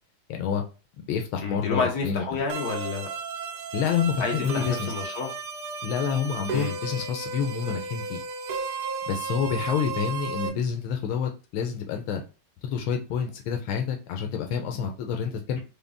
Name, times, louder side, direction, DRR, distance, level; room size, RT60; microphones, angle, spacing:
voice 1, 0.3-0.6 1.1-2.2 3.7-4.9 5.8-8.2 9.1-12.2 12.6-15.6, left 7 dB, 85° left, 4 dB, 1.5 m, -28 dB
voice 2, 1.4-3.1 4.2-5.3 6.5-6.7, left 4 dB, 55° left, 1 dB, 1.3 m, -29 dB
sound 1, 2.5-10.5, right 4 dB, 65° right, 1.0 m, -34 dB
5.1 x 2.2 x 3.5 m, 0.33 s
omnidirectional pair, 2.2 m